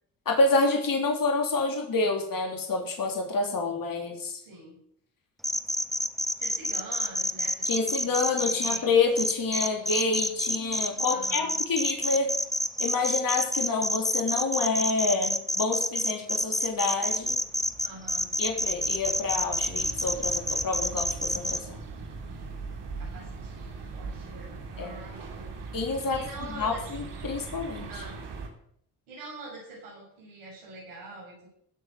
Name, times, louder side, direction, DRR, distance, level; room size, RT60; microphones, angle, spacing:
voice 1, 0.3-4.4 7.7-12.3 12.8-17.4 18.4-21.8 24.8-24.9 25.7-26.2 26.6-27.9, left 3 dB, 50° left, 2 dB, 3.7 m, -28 dB
voice 2, 4.4-4.8 6.4-9.0 11.1-11.6 17.8-18.4 23.0-25.5 26.1-26.8 27.9-28.2 29.1-31.5, right 2 dB, 85° right, -5 dB, 7.1 m, -45 dB
sound 1, 5.4-8.8 9.2-21.6, equal, ahead, 1.2 m, -28 dB
sound 2, 16.6-28.5, right 4 dB, 65° right, 3.1 m, -41 dB
16.5 x 6.8 x 8.1 m, 0.68 s
hypercardioid pair, 50°, 44 cm